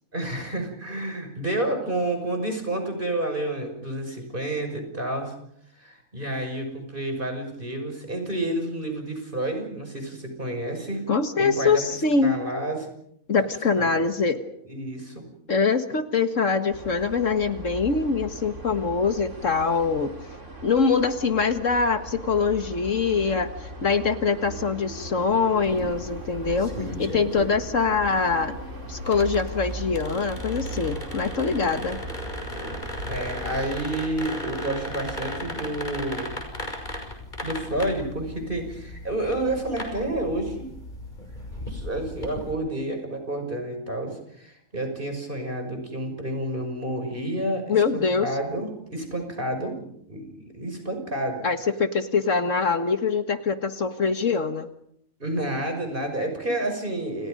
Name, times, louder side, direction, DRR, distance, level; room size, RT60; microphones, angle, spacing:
voice 1, 0.1-5.3 5.8-11.0 11.4-11.8 12.2-12.9 13.8-14.1 14.7-15.3 26.8-27.3 33.1-36.3 37.4-40.7 41.7-49.8 50.1-51.5 55.2-57.3, right 1 dB, 35° right, 5 dB, 6.4 m, -30 dB
voice 2, 11.1-12.4 13.3-14.4 15.5-20.1 20.6-26.7 27.0-28.6 28.9-32.0 47.7-48.3 51.4-54.7, left 5 dB, 65° left, 8 dB, 1.9 m, -23 dB
sound 1, 16.7-34.0, right 1 dB, 60° right, 4.1 m, -39 dB
sound 2, 25.6-42.5, left 1 dB, 35° left, 6.3 m, -36 dB
29.5 x 29.0 x 5.3 m, 0.72 s
omnidirectional pair, 1.4 m